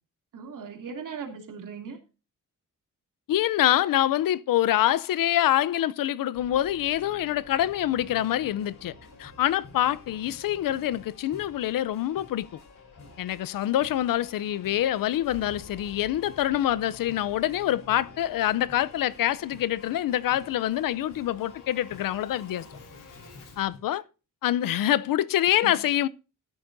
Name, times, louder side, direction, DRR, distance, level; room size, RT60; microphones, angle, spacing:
voice 1, 0.3-2.0 25.6-25.9, right 6 dB, 70° right, 2.9 m, -38 dB
voice 2, 3.3-8.9 9.2-12.5 13.2-22.6 23.6-24.0 24.4-26.1, left 12 dB, 85° left, 0.6 m, -25 dB
Singing / Musical instrument, 6.3-23.7, left 3 dB, 70° left, 3.3 m, -51 dB
sound 1, 7.5-23.8, left 2 dB, 55° left, 4.0 m, -53 dB
13.5 x 11.5 x 2.6 m
wide cardioid pair, 150°, 33 cm